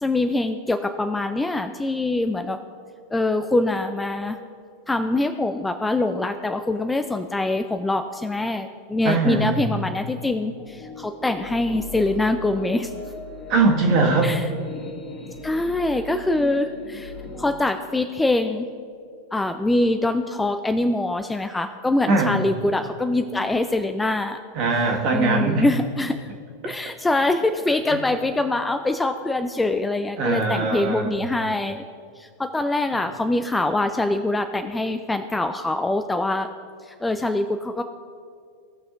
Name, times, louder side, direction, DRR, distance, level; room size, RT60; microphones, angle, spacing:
voice 1, 0.0-2.6 3.1-4.4 4.9-12.9 14.2-14.5 15.4-17.1 17.4-18.7 19.3-24.4 25.1-26.3 26.6-31.8 32.2-36.5 36.8-37.8, left 2 dB, 10° left, 8 dB, 0.3 m, -24 dB
voice 2, 9.0-9.6 13.5-14.3 22.1-22.4 24.5-25.6 26.6-26.8 30.2-31.1, right 3 dB, 40° right, -1 dB, 1.5 m, -21 dB
sound 1, 10.6-17.6, left 2 dB, 30° left, 1.9 m, -38 dB
17.0 x 6.0 x 2.4 m, 2.3 s
figure-of-eight pair, 90°, 0 cm